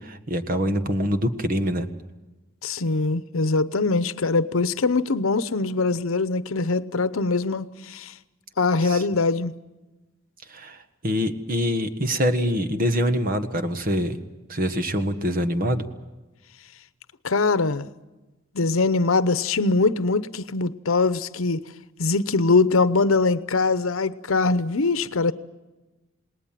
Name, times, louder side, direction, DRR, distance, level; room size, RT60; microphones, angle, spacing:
voice 1, 0.0-1.9 8.8-9.0 10.5-14.2 14.5-15.8, equal, 45° right, 1.5 m, -25 dB
voice 2, 2.6-8.1 8.6-9.5 17.2-17.9 18.5-21.6 22.0-25.3, left 3 dB, 80° left, 0.8 m, -22 dB
28.5 x 19.5 x 7.6 m
head